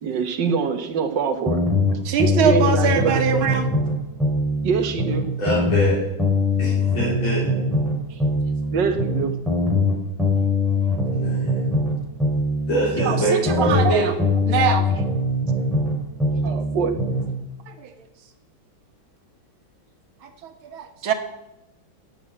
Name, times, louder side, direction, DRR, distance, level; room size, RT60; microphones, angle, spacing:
voice 1, 0.0-1.6 2.4-3.4 4.6-5.3 8.7-9.3 13.5-13.9 16.4-16.9, right 5 dB, 65° right, 7 dB, 1.9 m, -24 dB
sound 1, 1.5-3.9 4.2-7.9 8.2-11.9 12.2-15.9 16.2-17.3, left 2 dB, ahead, 4.1 m, -22 dB
voice 2, 2.1-3.7 13.0-14.1 14.5-14.9 16.3-16.4 17.7-17.9 20.2-21.1, right 7 dB, 90° right, 8 dB, 2.1 m, -23 dB
voice 3, 5.4-6.0 6.6-7.5 11.1-11.7 12.7-14.1, right 1 dB, 80° left, -7 dB, 4.4 m, -24 dB
11.0 x 7.5 x 8.8 m, 0.93 s
omnidirectional pair, 2.2 m